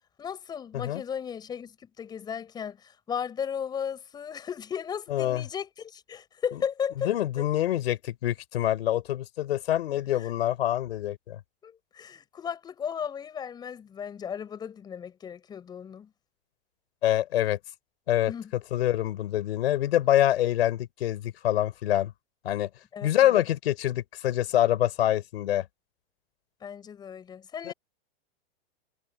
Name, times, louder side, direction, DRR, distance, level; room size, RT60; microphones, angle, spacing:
voice 1, 0.2-7.1 10.2-10.3 11.6-16.1 18.3-18.5 22.9-23.4 26.6-27.7, left 7 dB, 15° left, 7.8 m, -35 dB
voice 2, 5.1-5.4 7.0-11.4 17.0-17.6 18.1-18.3 18.7-22.1 22.4-22.7 23.0-25.6 27.6-27.7, left 12 dB, 75° left, 4.8 m, -25 dB
supercardioid pair, 180°, 31 cm